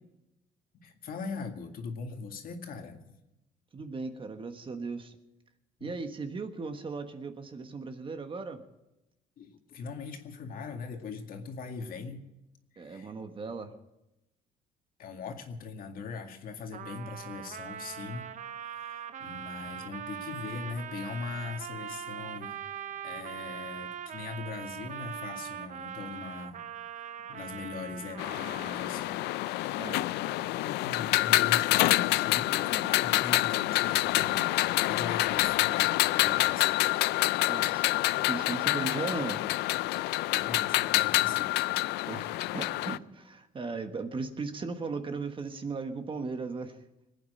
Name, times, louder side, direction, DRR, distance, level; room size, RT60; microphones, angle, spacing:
voice 1, 0.8-3.2 3.8-3.9 5.8-5.9 9.4-12.2 12.7-13.1 15.0-18.3 18.6-22.8 23.0-26.7 27.3-29.3 30.5-34.4 34.8-36.7 40.3-41.5, left 5 dB, 60° left, 4 dB, 2.1 m, -40 dB
voice 2, 3.7-5.2 5.8-8.6 12.8-13.8 29.8-30.1 37.5-39.4 42.1-46.9, right 4 dB, 30° right, 7 dB, 1.4 m, -37 dB
Trumpet, 16.7-29.2, right 8 dB, 45° right, 0.9 m, -41 dB
sound 1, 28.2-43.0, left 18 dB, 85° left, 0.4 m, -27 dB
21.0 x 9.1 x 6.6 m, 0.93 s
cardioid pair, 110°, 17 cm